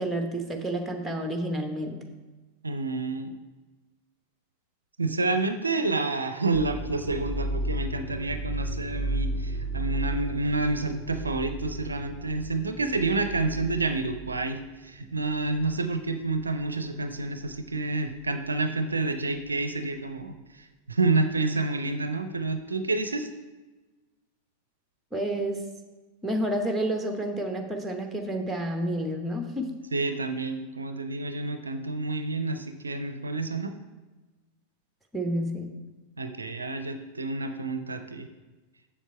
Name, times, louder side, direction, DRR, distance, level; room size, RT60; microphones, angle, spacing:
voice 1, 0.0-2.0 25.1-25.6 26.2-29.7 35.1-35.7, right 1 dB, 5° right, 4 dB, 1.0 m, -30 dB
voice 2, 2.6-3.4 5.0-23.3 29.9-33.7 36.2-38.3, right 3 dB, 75° right, 9 dB, 0.5 m, -29 dB
sound 1, 6.5-16.0 16.3-16.8 17.5-17.7, right 1 dB, 25° left, 1.0 m, -34 dB
7.2 x 7.1 x 4.4 m, 1.2 s
figure-of-eight pair, 90°, 0 cm